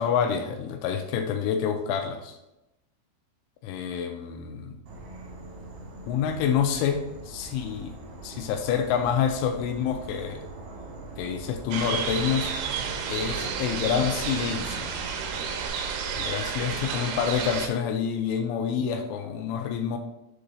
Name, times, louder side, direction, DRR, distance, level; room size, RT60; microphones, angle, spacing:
voice 1, 0.0-2.4 3.6-4.8 6.1-8.0 8.2-10.4 11.2-12.5 13.1-14.9 16.1-20.0, left 7 dB, 85° left, 6 dB, 3.0 m, -27 dB
Insect / Frog, 4.9-15.7, right 2 dB, 60° right, 1.9 m, -42 dB
sound 1, 11.7-17.7, right 6 dB, 90° right, 3.5 m, -31 dB
7.9 x 3.8 x 3.9 m, 0.92 s
omnidirectional pair, 5.7 m